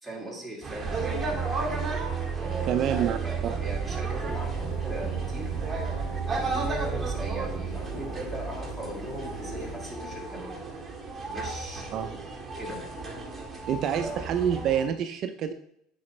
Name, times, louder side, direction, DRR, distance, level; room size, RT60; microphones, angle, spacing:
voice 1, 0.0-1.4 2.4-5.6 6.2-10.7 11.3-12.2 12.6-12.9 14.0-14.2, right 1 dB, ahead, -2 dB, 2.1 m, -39 dB
sound 1, 0.6-14.9, right 3 dB, 15° right, 1.7 m, -35 dB
sound 2, 0.8-8.2, right 7 dB, 35° right, 2.4 m, -33 dB
voice 2, 2.7-3.6 11.9-12.1 13.7-15.5, right 9 dB, 50° right, 8 dB, 0.4 m, -27 dB
Mechanisms, 4.3-9.7, equal, 80° left, 2.8 m, -41 dB
8.5 x 5.0 x 3.2 m, 0.74 s
supercardioid pair, 120°, 0 cm